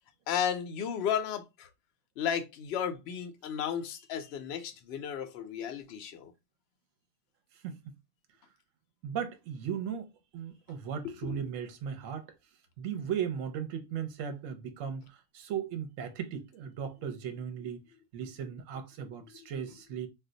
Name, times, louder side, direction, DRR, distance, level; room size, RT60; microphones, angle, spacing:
voice 1, 0.3-1.7 2.2-6.3 11.0-11.4, left 8 dB, 65° left, 0.6 m, -34 dB
voice 2, 9.0-12.3 12.8-17.8 18.1-20.1, right 8 dB, 65° right, 0.9 m, -37 dB
2.5 x 2.2 x 3.7 m
omnidirectional pair, 1.7 m